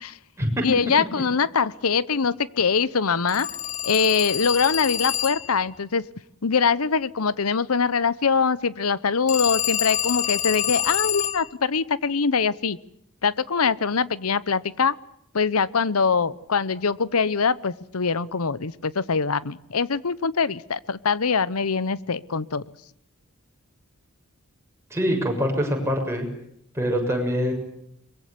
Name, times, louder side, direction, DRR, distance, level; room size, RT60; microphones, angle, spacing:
voice 1, 0.6-3.5 3.8-6.0 6.4-12.8 13.2-15.0 15.3-22.6, left 5 dB, 90° left, 18 dB, 0.9 m, -23 dB
Telephone, 3.3-5.6 9.3-11.5, left 11 dB, 35° left, 1.0 m, -27 dB
voice 2, 24.9-26.3 26.7-27.5, equal, 15° right, 1 dB, 7.1 m, -24 dB
23.5 x 22.0 x 8.3 m, 0.75 s
head